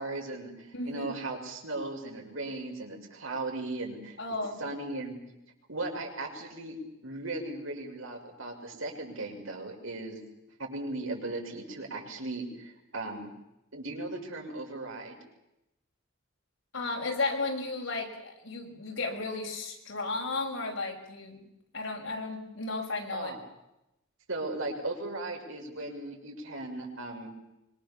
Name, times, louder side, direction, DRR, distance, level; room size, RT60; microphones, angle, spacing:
voice 1, 0.0-4.2 4.6-5.2 5.7-6.8 7.0-10.2 10.6-13.3 13.7-15.2 23.1-23.4 24.3-27.3, right 2 dB, 80° right, 1 dB, 6.3 m, -37 dB
voice 2, 0.7-1.1 4.2-4.6 16.7-21.5 21.7-23.3, left 3 dB, 75° left, 1 dB, 6.0 m, -34 dB
25.0 x 24.0 x 7.1 m, 0.88 s
head